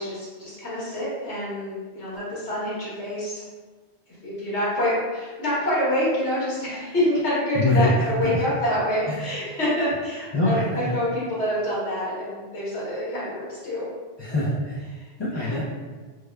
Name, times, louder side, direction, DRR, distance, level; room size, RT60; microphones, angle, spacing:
voice 1, 0.0-3.4 4.1-13.9 14.3-14.5 14.9-15.6, left 1 dB, 90° left, -7 dB, 1.5 m, -27 dB
voice 2, 7.5-7.9 8.2-8.4 9.1-9.2 10.3-10.9 14.2-14.8 15.2-15.6, left 2 dB, 40° left, -8 dB, 0.4 m, -23 dB
4.7 x 2.2 x 2.2 m, 1.4 s
omnidirectional pair, 1.1 m